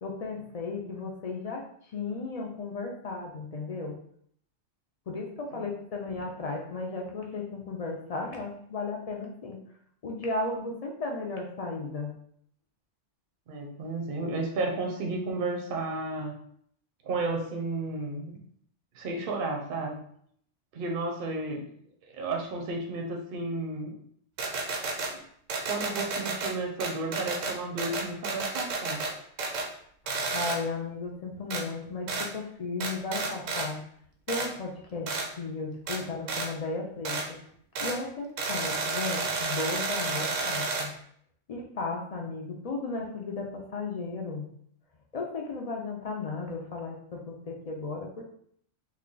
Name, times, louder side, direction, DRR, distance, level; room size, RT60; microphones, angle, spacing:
voice 1, 0.0-1.6 1.9-3.9 5.1-9.6 10.0-12.1 30.3-33.8 34.3-37.4 37.8-40.9 41.5-44.5 45.1-48.2, left 3 dB, 55° left, 0 dB, 0.4 m, -35 dB
voice 2, 13.5-16.3 17.0-18.4 18.9-20.0 20.7-21.7 22.0-23.9 25.0-25.2 25.7-29.0, right 2 dB, 55° right, 1 dB, 0.7 m, -32 dB
sound 1, 24.4-25.1 25.5-26.5 26.8-29.1 29.4-29.7 30.1-30.6 31.5-31.6 32.1-32.3 32.8-33.7 34.3-34.5 35.1-35.3 35.9-36.0 36.3-36.5 37.0-37.3 37.7-38.0 38.4-40.9, right 3 dB, 85° right, 1.0 m, -31 dB
3.1 x 2.3 x 3.8 m, 0.64 s
omnidirectional pair, 1.3 m